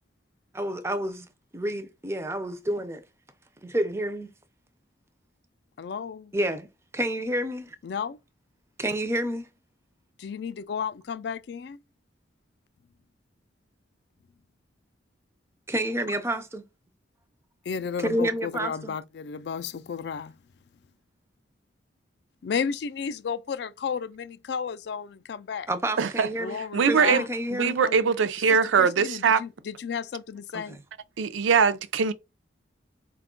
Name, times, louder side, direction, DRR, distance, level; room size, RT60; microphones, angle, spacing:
voice 1, 0.5-1.3 1.5-3.0 3.6-4.3 6.3-6.7 6.9-7.8 8.8-9.5 15.7-16.6 18.0-18.9 25.7-26.6 26.9-27.8 30.5-30.8, right 1 dB, 15° right, 0.4 m, -29 dB
voice 2, 5.8-6.3 7.8-8.2 10.2-11.8 17.7-20.3 22.4-25.7 26.4-27.2 27.8-28.0 28.8-30.8, left 6 dB, 60° left, 0.3 m, -33 dB
voice 3, 26.0-29.4 31.2-32.1, right 6 dB, 80° right, 0.4 m, -23 dB
4.3 x 2.3 x 3.6 m
head